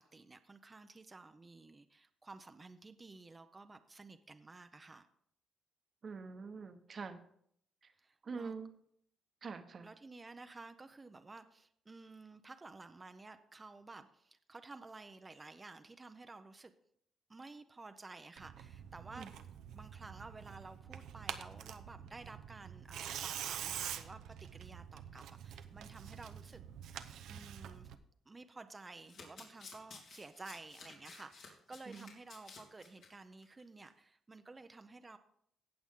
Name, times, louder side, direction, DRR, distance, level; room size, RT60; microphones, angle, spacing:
voice 1, 0.1-5.1 8.0-8.5 9.8-16.7 17.3-19.3 19.7-24.2 24.5-26.6 27.3-27.9 28.3-35.2, right 3 dB, 25° right, 9 dB, 0.6 m, -53 dB
voice 2, 6.0-7.2 8.3-8.7 9.4-9.9 19.2-19.3 31.9-32.1, right 5 dB, 45° right, 8 dB, 1.1 m, -44 dB
Tearing, 18.4-28.0, right 9 dB, 80° right, 0.7 m, -46 dB
Domestic sounds home sounds, 28.9-33.1 33.4-33.6 33.9-34.0, left 4 dB, 75° left, 3.2 m, -54 dB
17.5 x 6.1 x 3.7 m, 0.67 s
cardioid pair, 90°, 0 cm